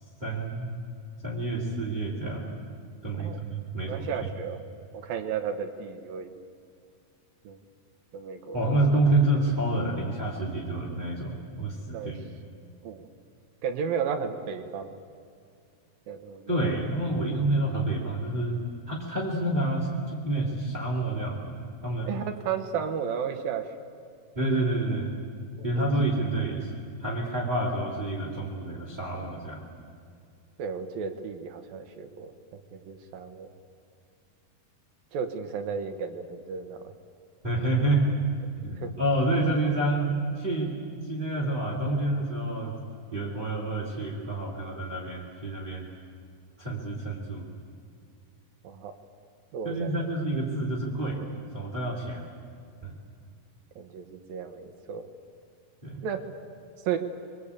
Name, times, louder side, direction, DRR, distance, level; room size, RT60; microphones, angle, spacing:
voice 1, 0.2-0.7 1.2-2.5 3.0-4.1 8.5-12.2 16.5-18.6 18.9-21.6 21.8-22.1 24.3-25.1 25.6-26.7 27.0-29.6 37.4-38.1 38.6-40.8 41.1-42.8 43.1-45.9 46.6-47.5 49.6-51.3 51.5-52.2 52.8-52.9 55.8-56.0, right 2 dB, 15° right, -4 dB, 2.7 m, -28 dB
voice 2, 3.9-4.6 4.9-6.3 7.4-7.6 8.1-8.6 11.9-12.1 12.8-13.1 13.6-15.0 16.1-16.6 22.1-23.7 25.6-25.9 30.6-32.3 32.7-33.5 35.1-36.9 38.8-38.9 48.6-48.9 49.5-50.0 53.8-55.0 56.0-56.2 56.9-57.0, right 7 dB, 75° right, 6 dB, 2.9 m, -33 dB
26.0 x 23.5 x 8.5 m, 2.3 s
omnidirectional pair, 4.3 m